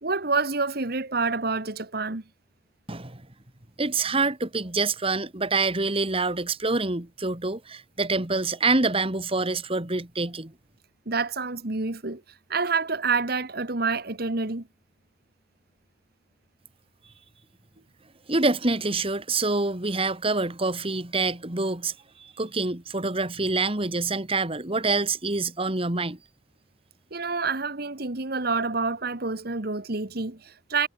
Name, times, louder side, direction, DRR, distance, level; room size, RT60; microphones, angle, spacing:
voice 1, 0.0-2.2 11.1-12.2 12.5-14.7 27.1-30.9, right 4 dB, 60° right, 1.8 m, -28 dB
voice 2, 2.9-3.2 3.8-10.5 18.3-21.9 22.2-26.2, right 3 dB, 30° right, 2.3 m, -26 dB
head